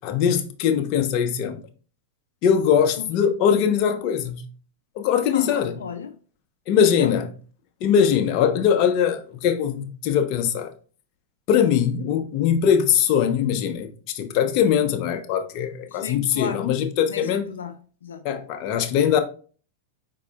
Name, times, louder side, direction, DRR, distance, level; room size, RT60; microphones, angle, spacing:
voice 1, 0.0-1.6 2.4-4.4 5.0-5.7 6.7-7.3 7.8-10.7 11.5-13.9 14.1-17.5 18.2-19.2, left 8 dB, 50° left, 0.9 m, -21 dB
voice 2, 5.3-6.2 6.8-7.1 15.9-16.8 17.1-18.2, left 7 dB, 85° left, 0.5 m, -35 dB
4.7 x 4.7 x 2.3 m
hypercardioid pair, 110°, 0 cm